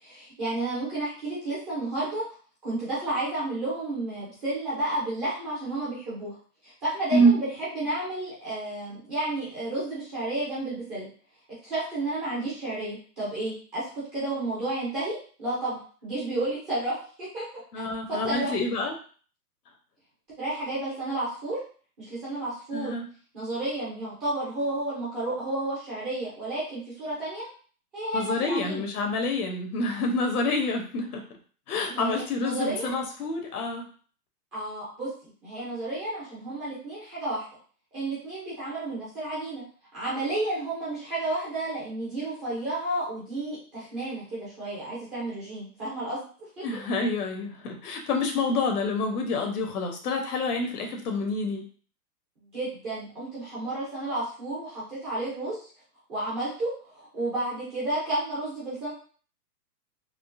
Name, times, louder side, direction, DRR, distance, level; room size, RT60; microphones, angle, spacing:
voice 1, 0.0-2.2 2.6-6.4 6.6-11.1 11.6-17.5 17.7-18.5 20.4-21.6 22.0-22.9 23.3-27.5 27.9-28.8 31.8-33.0 34.5-37.5 37.9-39.6 39.9-46.6 52.5-55.7 56.1-58.9, right 2 dB, 10° right, -10 dB, 0.4 m, -32 dB
voice 2, 17.7-18.9 22.7-23.1 28.1-31.2 31.7-33.8 46.6-51.6, left 1 dB, 70° left, 3 dB, 1.0 m, -27 dB
3.6 x 2.0 x 2.5 m, 0.41 s
hypercardioid pair, 135°, 47 cm